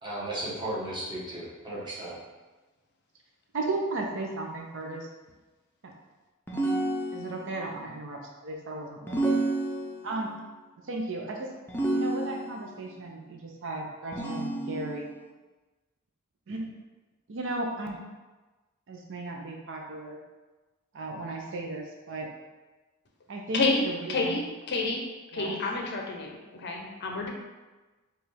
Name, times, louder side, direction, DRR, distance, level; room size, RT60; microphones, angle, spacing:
voice 1, 0.0-2.2, right 1 dB, 20° right, -7 dB, 1.1 m, -35 dB
voice 2, 3.5-5.1 5.8-5.9 7.1-9.4 10.0-10.3 10.9-11.5 11.9-15.1 16.5-16.7 17.3-18.0 18.9-20.2 20.9-22.3 23.3-24.4 25.3-25.6, right 2 dB, 60° right, 1 dB, 0.5 m, -35 dB
sound 1, 6.5-7.6 9.1-10.2 11.7-12.7 14.1-15.1, right 2 dB, 10° left, 0.5 m, -29 dB
voice 3, 23.5-25.0 25.3-27.3, left 3 dB, 50° left, 0 dB, 0.6 m, -29 dB
5.1 x 2.4 x 3.3 m, 1.2 s
head